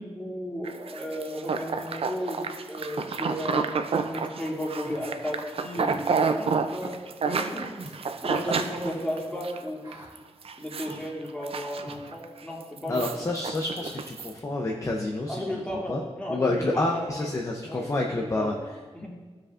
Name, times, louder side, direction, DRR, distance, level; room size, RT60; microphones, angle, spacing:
voice 1, 0.0-7.0 7.2-7.7 8.2-9.8 10.6-13.2 15.3-17.4 17.7-18.6 18.9-19.1, equal, 10° left, -4 dB, 1.6 m, -34 dB
sound 1, 0.6-9.6 9.9-10.2 10.4-11.0 11.3-12.2 12.6-14.3, right 5 dB, 60° right, 0.4 m, -30 dB
Human voice, 4.8-5.0 5.8-6.1 6.8-7.0 7.8-8.0 8.8-9.0 9.8-10.1 10.8-11.0 11.8-12.0 12.8-13.0 13.8-14.0, right 1 dB, 45° right, 2.3 m, -44 dB
voice 2, 12.9-15.5 15.9-16.0 16.3-18.5, left 2 dB, 25° left, 1 dB, 0.6 m, -28 dB
15.0 x 5.0 x 2.5 m, 1.4 s
wide cardioid pair, 145°, 11 cm